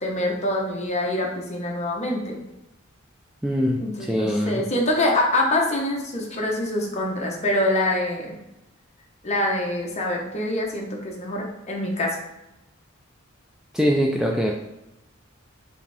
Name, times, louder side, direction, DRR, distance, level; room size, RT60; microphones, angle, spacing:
voice 1, 0.0-2.4 3.8-8.4 9.2-12.2, left 1 dB, 35° left, -1 dB, 0.9 m, -25 dB
voice 2, 3.4-4.6 13.7-14.5, equal, 5° right, -1 dB, 0.3 m, -23 dB
4.8 x 2.6 x 3.3 m, 0.94 s
head